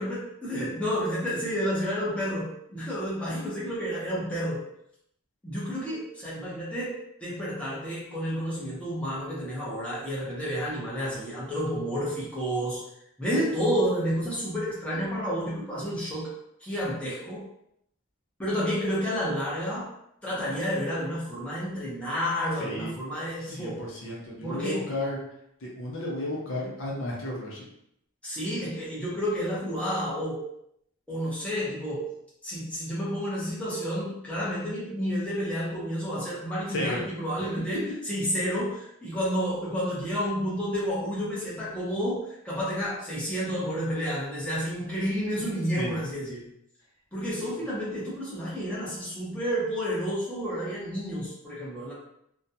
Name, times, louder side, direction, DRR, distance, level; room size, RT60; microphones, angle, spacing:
voice 1, 0.0-4.6 5.4-12.8 13.2-16.3 16.6-17.4 18.4-19.9 20.2-23.8 24.4-24.8 28.2-30.4 31.1-32.1 32.4-46.5 47.1-51.9, equal, 5° left, -9 dB, 0.7 m, -30 dB
voice 2, 22.6-22.9 23.4-25.2 25.6-27.6 36.7-37.0 45.8-45.9 47.3-47.5, left 1 dB, 60° left, -3 dB, 0.6 m, -33 dB
2.4 x 2.2 x 2.7 m, 0.76 s
head